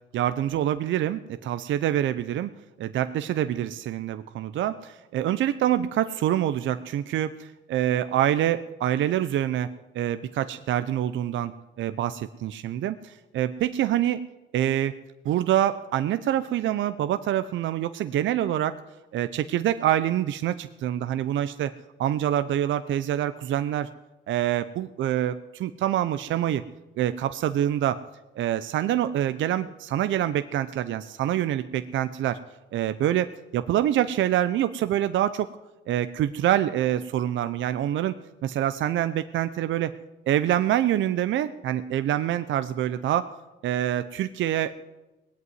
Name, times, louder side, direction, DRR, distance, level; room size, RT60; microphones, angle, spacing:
voice 1, 0.1-2.5 2.8-11.5 11.8-14.2 14.5-15.0 15.2-18.8 19.1-21.7 22.0-23.9 24.3-26.6 27.0-28.0 28.4-32.4 32.7-35.5 35.9-38.1 38.4-39.9 40.3-43.3 43.6-44.7, right 11 dB, 75° right, 12 dB, 0.6 m, -26 dB
18.5 x 8.3 x 9.4 m, 1.0 s
cardioid pair, 90°, 20 cm